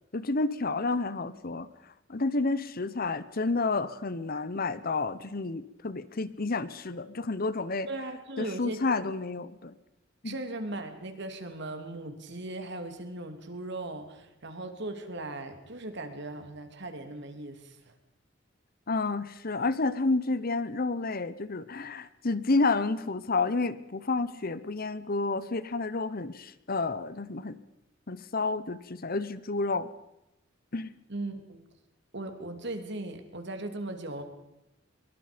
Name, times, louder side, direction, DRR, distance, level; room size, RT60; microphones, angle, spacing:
voice 1, 0.1-1.7 2.1-7.9 8.4-9.8 10.2-10.4 18.9-27.6 28.1-29.9 30.7-30.9, left 3 dB, 50° left, 15 dB, 1.0 m, -30 dB
voice 2, 7.9-8.8 10.2-17.9 31.1-31.6 32.1-34.2, right 2 dB, 60° right, 6 dB, 2.9 m, -38 dB
23.0 x 23.0 x 5.2 m, 0.92 s
head